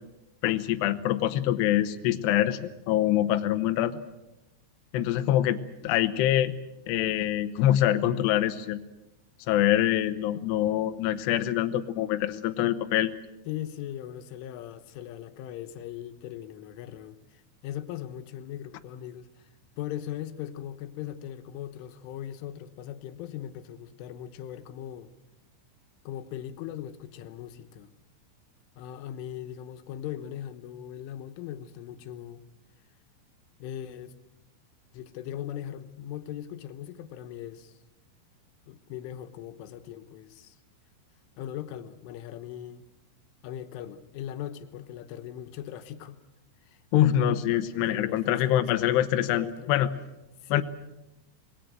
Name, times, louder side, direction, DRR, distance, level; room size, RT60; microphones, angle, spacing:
voice 1, 0.4-4.0 4.9-6.5 6.9-8.8 9.5-13.1 46.9-49.9 50.5-50.6, left 12 dB, 75° left, 8 dB, 2.9 m, -25 dB
voice 2, 13.5-19.3 19.8-25.1 26.1-27.9 28.8-32.4 33.6-34.2 34.9-37.8 38.7-40.6 41.4-42.8 43.4-46.2 46.7-46.8 47.7-49.1 49.3-49.7 50.4-50.6, left 11 dB, 90° left, 9 dB, 3.6 m, -39 dB
26.0 x 20.5 x 7.7 m, 0.94 s
omnidirectional pair, 5.5 m